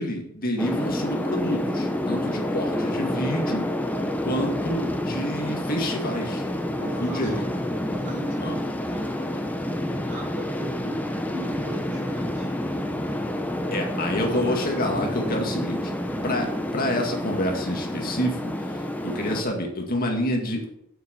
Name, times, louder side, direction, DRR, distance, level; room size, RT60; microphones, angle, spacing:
voice 1, 0.0-3.6 4.2-6.4 7.0-7.4 8.4-8.6 13.7-15.9 16.2-16.5 16.7-20.8, left 1 dB, 45° left, 2 dB, 2.1 m, -28 dB
sound 1, 0.6-19.4, left 1 dB, 10° left, 0.8 m, -28 dB
voice 2, 6.7-7.4 7.9-8.6 8.9-9.1 10.1-12.5 13.7-13.8, right 1 dB, 55° right, -6 dB, 4.7 m, -37 dB
7.4 x 6.9 x 6.9 m, 0.79 s
head